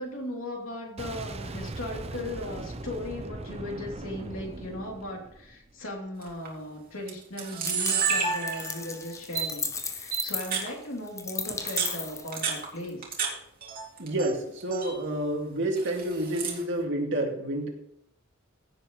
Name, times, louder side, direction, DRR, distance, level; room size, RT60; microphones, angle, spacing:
voice 1, 0.0-13.2, left 1 dB, 75° left, -1 dB, 3.1 m, -37 dB
Boom, 1.0-5.8, right 2 dB, 30° right, 0.7 m, -39 dB
Camera, 6.2-6.5 7.1-7.2 7.4-8.9 9.3-9.5 10.1-10.7 11.5-13.3 13.6-14.3 14.6-14.9 15.7-16.6, right 6 dB, 45° right, 2.5 m, -30 dB
sound 1, 7.7-12.9, left 5 dB, 15° left, 0.6 m, -36 dB
voice 2, 14.0-17.7, right 1 dB, 60° right, 1 dB, 2.2 m, -29 dB
16.0 x 7.6 x 3.2 m, 0.73 s
head